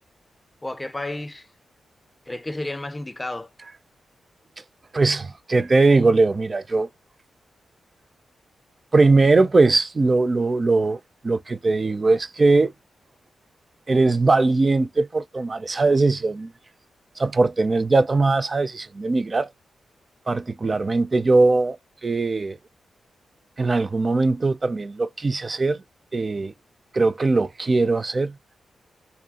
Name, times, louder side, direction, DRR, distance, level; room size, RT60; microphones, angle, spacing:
voice 1, 0.6-1.5 2.3-3.5, left 2 dB, 20° left, 0.4 m, -31 dB
voice 2, 4.9-6.9 8.9-12.7 13.9-16.5 17.2-19.5 20.3-22.6 23.6-25.8 26.1-26.5 26.9-28.4, right 3 dB, 40° right, 0.4 m, -20 dB
2.6 x 2.2 x 2.8 m
supercardioid pair, 45°, 0 cm